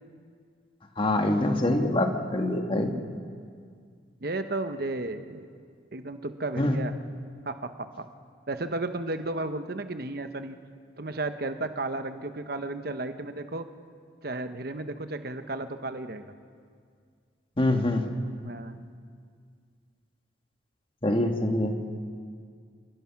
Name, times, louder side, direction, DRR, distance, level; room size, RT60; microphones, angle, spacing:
voice 1, 1.0-2.9 6.6-6.8 17.6-18.1 21.0-21.7, left 1 dB, 25° left, 4 dB, 1.6 m, -25 dB
voice 2, 2.5-3.2 4.2-5.5 5.9-6.9 7.5-8.1 8.5-10.6 11.0-13.7 14.2-16.3 18.4-18.8 21.2-21.3, right 2 dB, 50° right, 9 dB, 1.0 m, -34 dB
28.0 x 18.5 x 5.9 m, 2.1 s
head